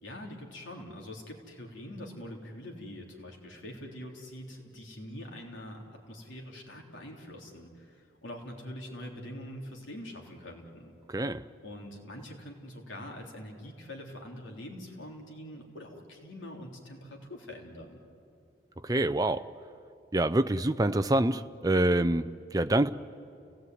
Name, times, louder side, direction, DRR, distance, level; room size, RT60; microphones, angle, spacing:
voice 1, 0.0-10.9 11.6-18.0, left 1 dB, 85° left, 0 dB, 3.6 m, -44 dB
voice 2, 11.1-11.4 18.8-19.5 20.1-22.9, right 1 dB, 20° right, 10 dB, 0.5 m, -26 dB
29.5 x 17.5 x 9.4 m, 2.6 s
head